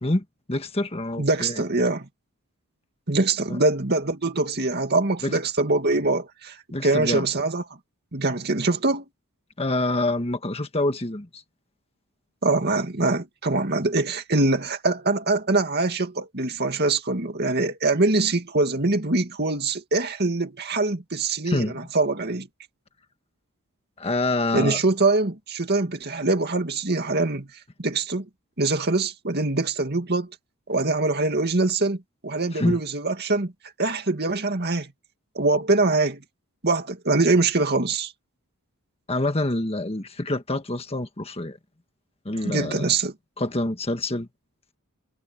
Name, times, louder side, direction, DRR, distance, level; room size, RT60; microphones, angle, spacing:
voice 1, 0.0-1.6 3.5-3.6 5.2-5.4 6.7-7.3 9.6-11.4 21.4-21.9 24.0-24.8 32.5-32.8 39.1-41.6 42.2-42.9 43.4-44.3, left 2 dB, 25° left, 1.6 m, -26 dB
voice 2, 1.2-2.1 3.1-6.6 6.8-7.6 8.1-9.0 12.4-22.5 24.5-27.5 27.8-28.3 28.6-30.3 30.7-32.0 32.2-33.5 33.8-34.9 35.3-36.2 36.6-38.1 42.4-43.1, right 3 dB, 45° right, 2.3 m, -23 dB
head